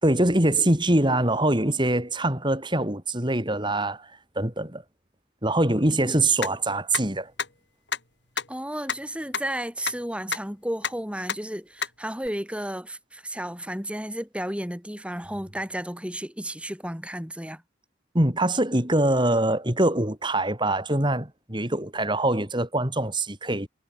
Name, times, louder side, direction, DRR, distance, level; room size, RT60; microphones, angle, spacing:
voice 1, 0.0-4.1 4.4-4.8 5.4-7.3 18.1-23.7, right 1 dB, 25° right, 4.1 m, -23 dB
sound 1, 6.4-6.5 6.9-7.0 7.4-7.5 7.9-8.0 8.4-8.5 8.9-9.0 9.3-9.4 9.9-10.0 10.3-10.4 10.8-10.9 11.3-11.4 11.8-11.9 12.3-12.4, left 6 dB, 60° left, 7.9 m, -27 dB
voice 2, 8.5-17.6, right 1 dB, 5° right, 5.1 m, -33 dB
head